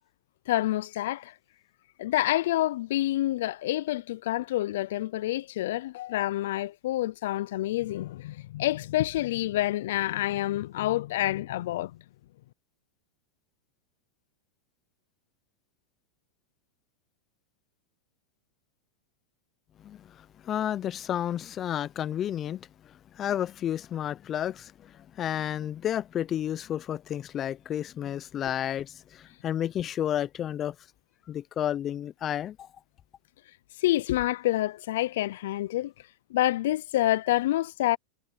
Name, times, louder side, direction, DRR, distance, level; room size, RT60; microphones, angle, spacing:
voice 1, 0.5-1.3 2.0-11.9 33.8-35.9 36.3-38.0, left 15 dB, 70° left, 0.5 m, -27 dB
voice 2, 20.4-22.7 23.2-24.9 25.2-30.7 31.3-32.7, left 10 dB, 30° left, 0.7 m, -31 dB
hypercardioid pair, 120°, 0 cm